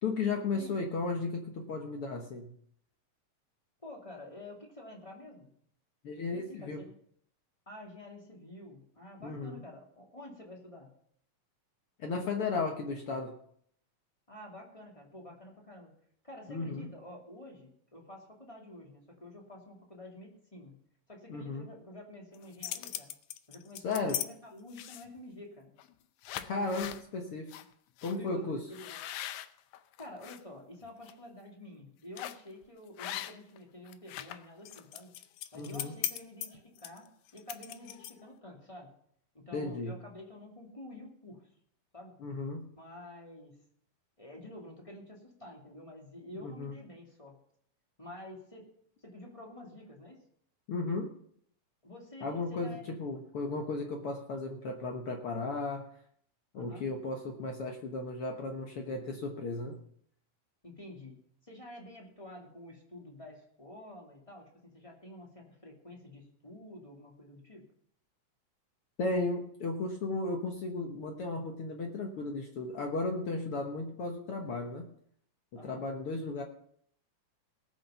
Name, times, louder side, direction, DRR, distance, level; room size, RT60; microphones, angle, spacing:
voice 1, 0.0-2.5 6.0-6.8 9.2-9.6 12.0-13.4 16.5-16.9 21.3-21.6 23.8-24.2 26.4-27.5 28.0-28.6 35.6-35.9 39.5-40.0 42.2-42.6 46.4-46.7 50.7-51.1 52.2-55.8 56.5-59.8 69.0-74.8 75.6-76.4, left 3 dB, 60° left, 2 dB, 1.6 m, -35 dB
voice 2, 3.8-5.5 6.3-6.9 7.7-10.9 14.3-15.9 16.2-20.8 21.1-23.2 23.5-25.7 26.3-26.9 28.1-29.0 30.0-35.1 35.5-38.9 39.3-41.5 41.9-42.2 42.8-43.5 44.2-47.4 48.0-48.7 49.0-50.2 51.8-52.9 56.5-56.9 60.6-61.2 61.4-67.6 75.5-75.8, left 1 dB, 10° left, -1 dB, 2.1 m, -49 dB
sound 1, 22.3-24.3 24.7-25.2 25.8-25.9 26.2-27.0 27.5-27.6 28.0-28.2 28.7-30.4 30.9-31.1 32.2-32.5 33.0-33.6 33.9-38.3, left 12 dB, 80° left, 1.8 m, -40 dB
19.0 x 6.5 x 5.7 m, 0.66 s
omnidirectional pair, 3.9 m